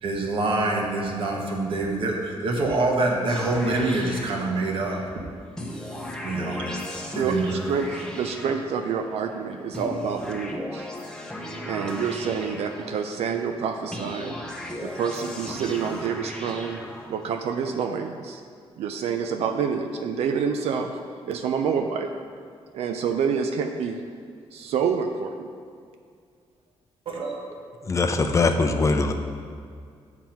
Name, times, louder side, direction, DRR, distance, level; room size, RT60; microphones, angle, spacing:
voice 1, 0.0-5.0 6.2-6.8 7.1-7.6 27.1-27.4, right 2 dB, 60° right, 0 dB, 1.3 m, -25 dB
sound 1, 3.3-5.0 5.6-9.1 9.7-13.3 13.9-17.4, left 1 dB, 5° left, 0.8 m, -36 dB
voice 2, 7.1-11.0 11.7-14.3 14.8-16.8 17.1-18.4 18.8-20.9 21.3-22.1 22.7-24.0 24.5-25.5, right 6 dB, 80° right, 5 dB, 0.5 m, -28 dB
voice 3, 27.8-29.1, left 3 dB, 30° left, 6 dB, 0.5 m, -21 dB
7.2 x 5.9 x 4.5 m, 2.2 s
cardioid pair, 115°, 11 cm